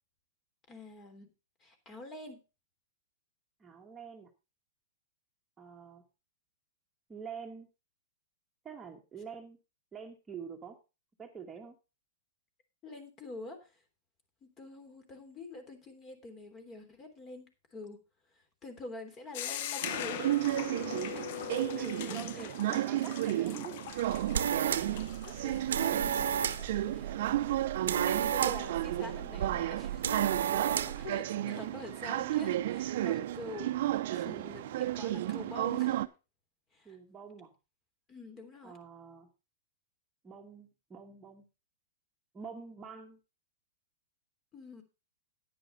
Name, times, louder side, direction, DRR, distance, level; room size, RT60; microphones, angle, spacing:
voice 1, 0.7-1.3 1.6-2.4 12.8-13.8 14.4-18.0 18.6-20.5 21.0-21.3 22.1-22.8 24.6-24.7 25.3-27.7 28.2-30.2 30.6-36.0 36.7-37.0 38.1-38.8 44.5-44.8, left 3 dB, 25° left, 8 dB, 3.3 m, -47 dB
voice 2, 3.6-4.3 5.6-6.0 7.1-7.7 8.6-9.6 9.9-10.8 11.2-11.7 21.7-24.0 30.5-30.9 36.8-37.5 38.6-39.3 40.2-41.5 42.3-43.2, right 6 dB, 15° right, 1 dB, 1.6 m, -46 dB
sound 1, 19.3-26.7, left 12 dB, 55° left, 0.8 m, -41 dB
sound 2, 19.8-36.1, right 13 dB, 60° right, 0.8 m, -33 dB
sound 3, 24.0-31.1, right 9 dB, 75° right, 1.0 m, -33 dB
10.0 x 9.5 x 4.2 m, 0.29 s
hypercardioid pair, 130°, 0 cm